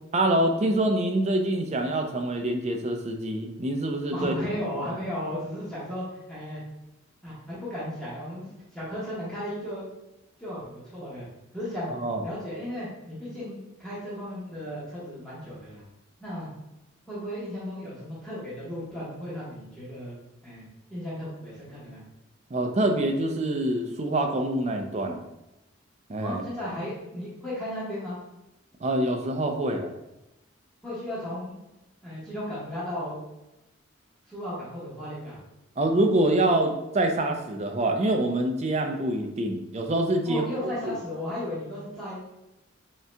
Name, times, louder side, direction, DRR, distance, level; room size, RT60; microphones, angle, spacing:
voice 1, 0.1-4.3 11.9-12.2 22.5-25.3 26.1-26.4 28.8-29.9 35.8-40.4 40.8-40.9, right 1 dB, 35° right, 3 dB, 0.4 m, -25 dB
voice 2, 4.1-6.6 7.2-9.8 10.4-11.3 11.5-11.9 12.2-15.8 16.2-16.5 17.1-20.2 20.4-22.0 26.2-28.2 30.8-31.6 32.0-33.2 34.3-35.4 40.3-42.3, equal, 5° left, -10 dB, 1.2 m, -35 dB
5.7 x 2.8 x 2.2 m, 0.94 s
head